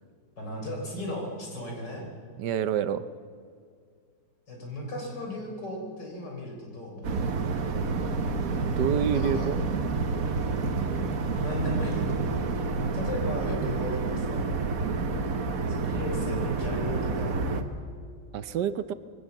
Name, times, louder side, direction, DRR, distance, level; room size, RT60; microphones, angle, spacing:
voice 1, 0.4-2.0 4.5-7.2 9.1-9.5 11.4-12.2 12.9-14.5 15.7-17.5, left 1 dB, 75° left, 1 dB, 4.6 m, -35 dB
voice 2, 2.4-3.1 8.8-9.6 14.8-15.1 18.3-18.9, right 9 dB, 75° right, 13 dB, 1.3 m, -28 dB
sound 1, 7.0-17.6, right 4 dB, 55° right, 1.5 m, -29 dB
22.0 x 17.5 x 7.2 m, 2.2 s
omnidirectional pair, 1.9 m